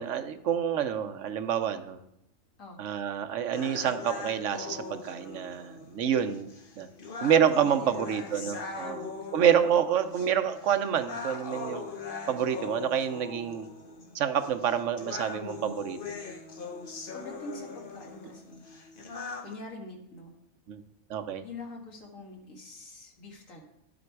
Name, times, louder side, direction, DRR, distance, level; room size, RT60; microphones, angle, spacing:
voice 1, 0.0-2.0 2.8-6.5 6.8-6.9 7.2-9.0 9.3-11.8 12.3-13.7 14.1-16.0 20.7-20.8 21.1-21.4, right 8 dB, 70° right, 10 dB, 1.0 m, -27 dB
sound 1, 3.5-19.5, left 4 dB, 45° left, 1.1 m, -41 dB
voice 2, 7.5-9.4 10.0-10.1 17.1-18.6 19.4-20.3 21.4-23.6, left 2 dB, 75° left, 1 dB, 2.1 m, -45 dB
11.0 x 7.6 x 4.7 m, 0.79 s
omnidirectional pair, 1.4 m